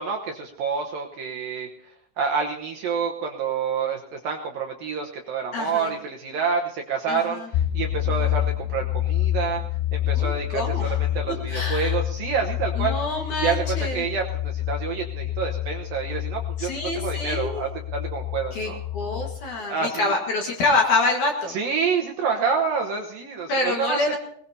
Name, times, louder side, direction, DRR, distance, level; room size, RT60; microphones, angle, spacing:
voice 1, 0.0-1.7 2.2-9.6 9.9-13.0 13.4-18.8 19.7-20.1 21.5-24.2, right 5 dB, 70° right, 1 dB, 2.3 m, -28 dB
voice 2, 5.5-5.9 7.1-7.5 8.1-8.4 10.1-11.0 11.5-12.0 12.8-14.0 16.6-17.6 18.5-21.6 23.5-24.2, left 3 dB, 55° left, 1 dB, 2.6 m, -26 dB
sound 1, 7.5-19.4, left 13 dB, 80° left, 2.4 m, -28 dB
21.0 x 20.0 x 2.8 m, 0.66 s
omnidirectional pair, 5.2 m